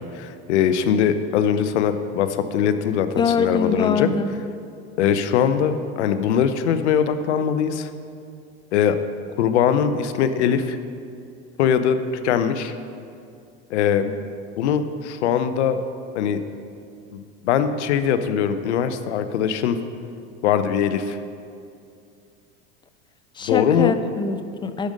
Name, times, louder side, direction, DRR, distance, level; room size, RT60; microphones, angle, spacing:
voice 1, 0.0-4.1 5.0-7.9 8.7-9.0 9.4-10.8 11.6-12.0 12.2-12.7 13.7-14.2 14.6-15.8 16.1-16.4 17.1-19.8 20.4-21.2 23.5-23.9, left 8 dB, 85° left, 10 dB, 0.7 m, -21 dB
voice 2, 3.2-4.3 23.4-24.9, left 5 dB, 15° left, 11 dB, 0.4 m, -23 dB
11.5 x 5.2 x 6.4 m, 2.4 s
supercardioid pair, 110°, 33 cm